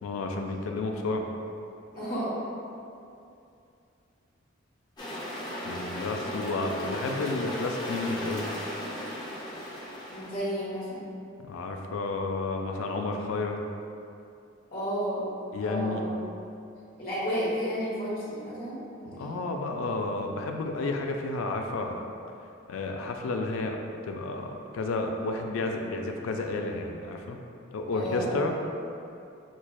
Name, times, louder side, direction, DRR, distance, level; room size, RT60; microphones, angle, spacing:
voice 1, 0.0-1.3 5.6-8.5 11.4-13.6 15.5-16.0 19.0-22.1 22.7-23.8 24.0-27.4 27.7-28.5, left 3 dB, 80° left, 3 dB, 0.3 m, -31 dB
voice 2, 1.9-2.4 5.6-5.7 9.3-9.4 10.1-11.0 14.7-15.2 15.6-16.1 17.0-19.5 27.9-28.5, equal, 45° left, -9 dB, 1.0 m, -32 dB
sound 1, 5.0-10.4, equal, 20° left, 0.5 m, -36 dB
5.9 x 2.1 x 2.3 m, 2.6 s
head